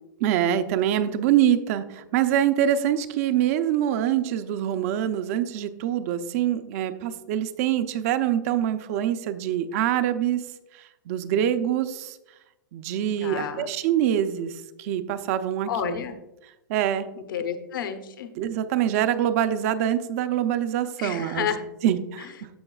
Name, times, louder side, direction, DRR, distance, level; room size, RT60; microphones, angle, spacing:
voice 1, 0.2-10.4 10.7-12.2 12.7-16.0 16.7-17.1 18.4-21.5 21.8-22.5, right 10 dB, 45° right, 10 dB, 0.7 m, -25 dB
voice 2, 13.2-13.7 15.7-16.1 17.3-18.3 21.0-21.6, left 8 dB, 70° left, 8 dB, 1.1 m, -30 dB
15.0 x 5.2 x 2.4 m, 0.93 s
hypercardioid pair, 145°, 12 cm